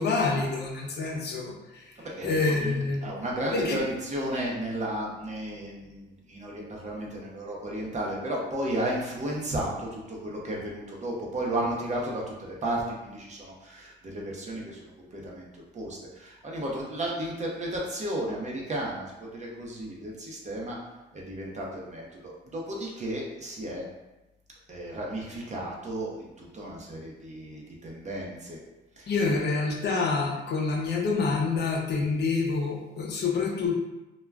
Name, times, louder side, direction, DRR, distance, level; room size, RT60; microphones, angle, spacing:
voice 1, 0.0-1.8 2.2-3.0 3.5-3.8 29.1-33.7, left 4 dB, 60° left, -1 dB, 0.6 m, -27 dB
voice 2, 2.0-20.8 21.1-23.9 24.7-28.6 29.0-29.3, right 1 dB, 35° right, -3 dB, 0.7 m, -34 dB
2.2 x 2.2 x 3.4 m, 1.0 s
cardioid pair, 90°, 20 cm